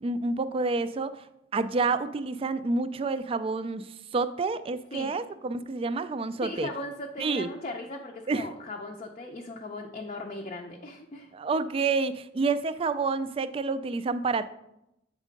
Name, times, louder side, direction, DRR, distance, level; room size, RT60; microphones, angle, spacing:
voice 1, 0.0-1.1 1.5-3.9 4.1-6.7 7.2-7.5 8.3-8.5 11.3-14.5, right 3 dB, 30° right, 13 dB, 0.3 m, -28 dB
voice 2, 6.4-11.3, left 2 dB, 35° left, 1 dB, 0.5 m, -38 dB
7.4 x 3.6 x 5.1 m, 0.85 s
head